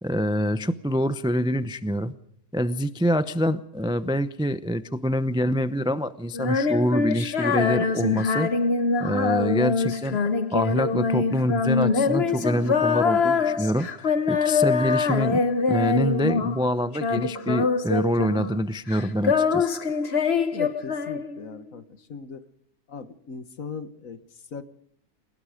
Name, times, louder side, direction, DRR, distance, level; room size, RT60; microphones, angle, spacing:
voice 1, 0.0-2.1 2.5-8.5 9.0-10.2 10.5-15.4 15.7-19.7, equal, 5° right, 12 dB, 0.4 m, -26 dB
Female singing, 6.3-16.7 16.9-18.6 18.9-21.6, left 4 dB, 45° left, 1.3 m, -24 dB
sound 1, 11.8-13.6, right 8 dB, 55° right, 2.3 m, -39 dB
voice 2, 20.5-22.5 22.9-24.6, left 5 dB, 60° left, 11 dB, 1.7 m, -38 dB
29.5 x 18.0 x 5.1 m, 0.65 s
omnidirectional pair, 1.6 m